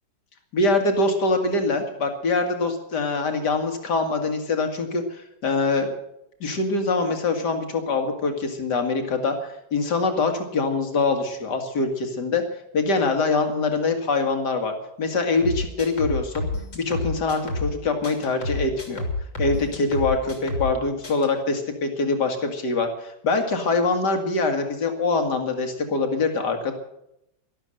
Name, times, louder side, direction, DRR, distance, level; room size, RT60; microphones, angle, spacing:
voice 1, 0.5-5.9 6.4-12.4 12.7-14.7 15.0-16.5 16.7-19.0 19.4-26.7, left 3 dB, 60° left, 6 dB, 2.6 m, -24 dB
sound 1, 15.4-17.8 18.0-20.8 21.0-21.3, left 2 dB, 80° left, 3.9 m, -29 dB
12.5 x 12.5 x 7.7 m, 0.81 s
omnidirectional pair, 2.0 m